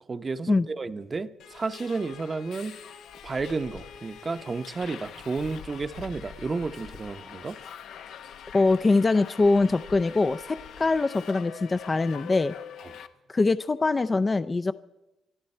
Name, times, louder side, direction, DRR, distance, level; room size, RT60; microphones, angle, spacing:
voice 1, 0.1-2.8 3.2-7.6 12.8-13.0, right 4 dB, 30° right, 12 dB, 0.8 m, -32 dB
Subway metro underground, 1.4-13.1, left 8 dB, 75° left, 0.9 m, -44 dB
voice 2, 8.5-12.5 13.3-14.7, left 3 dB, 25° left, 11 dB, 0.5 m, -23 dB
24.0 x 12.5 x 4.4 m, 0.96 s
cardioid pair, 90°, 0 cm